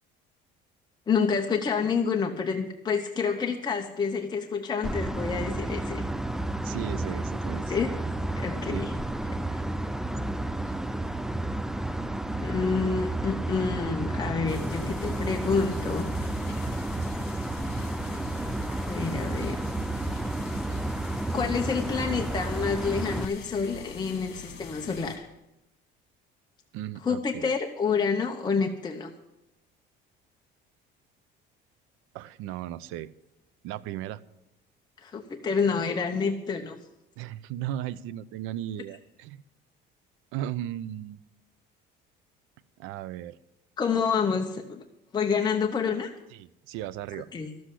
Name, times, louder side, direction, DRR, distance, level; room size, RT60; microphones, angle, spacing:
voice 1, 1.1-6.0 7.7-7.9 8.4-8.9 12.4-16.1 18.9-19.6 21.3-25.3 27.0-29.1 35.0-36.8 43.8-44.8 45.1-46.1 47.1-47.5, left 5 dB, 20° left, 3 dB, 0.9 m, -28 dB
sound 1, 4.8-23.2, right 1 dB, ahead, 0.4 m, -31 dB
voice 2, 6.6-7.8 8.7-8.9 26.7-27.5 32.1-33.1 33.6-34.2 37.2-39.4 40.3-41.2 42.8-43.4 46.3-47.3, right 12 dB, 90° right, 17 dB, 0.6 m, -36 dB
sound 2, 14.5-25.2, left 6 dB, 55° left, 2.5 m, -45 dB
12.5 x 7.8 x 8.3 m, 0.91 s
cardioid pair, 135°, 20 cm